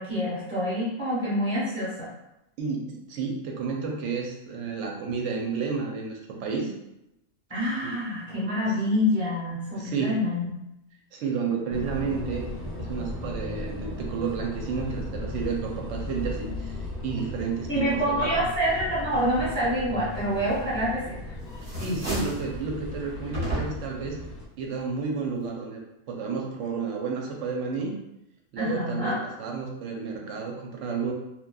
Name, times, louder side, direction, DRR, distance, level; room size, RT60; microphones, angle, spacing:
voice 1, 0.0-2.1 7.5-10.5 17.7-21.0 28.5-29.2, equal, 5° left, -9 dB, 1.0 m, -26 dB
voice 2, 2.6-6.7 7.8-7.9 8.6-8.8 9.7-10.2 11.1-12.4 12.8-18.5 21.6-24.2 24.6-25.8 26.1-27.9 28.5-31.1, right 5 dB, 75° right, 0 dB, 0.9 m, -31 dB
sound 1, 11.7-24.5, left 1 dB, 45° left, 0.6 m, -36 dB
sound 2, 20.8-21.2 21.5-22.5 23.3-24.0, right 1 dB, 15° right, 0.7 m, -32 dB
2.9 x 2.2 x 2.2 m, 0.87 s
omnidirectional pair, 1.3 m